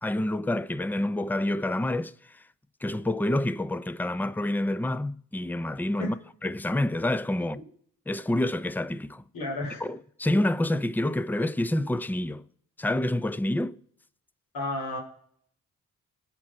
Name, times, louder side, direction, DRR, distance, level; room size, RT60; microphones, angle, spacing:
voice 1, 0.0-2.4 2.8-6.1 6.4-7.6 8.1-9.3 9.8-12.4 12.8-13.8, left 1 dB, 5° left, 0.6 m, -28 dB
voice 2, 9.3-9.8 14.5-15.0, left 2 dB, 80° left, 3.9 m, -32 dB
19.0 x 7.6 x 4.3 m
cardioid pair, 70°, 34 cm